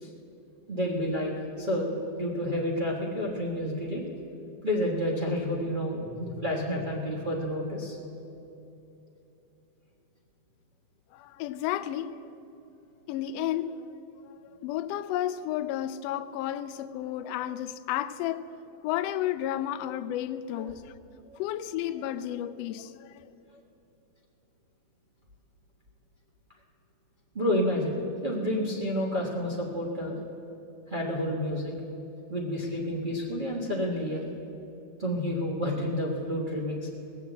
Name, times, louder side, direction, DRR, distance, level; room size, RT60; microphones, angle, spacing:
voice 1, 0.7-1.3 1.6-4.0 4.6-8.0 20.5-20.7 21.3-21.4 27.3-30.1 30.9-31.7 32.3-34.2 35.0-36.9, equal, 40° right, 0.7 m, -30 dB
voice 2, 11.1-12.3 13.1-13.9 14.2-14.3 14.6-18.5 18.8-20.8 21.4-23.3, left 12 dB, 90° left, 1.4 m, -32 dB
18.5 x 7.2 x 8.0 m
omnidirectional pair, 3.4 m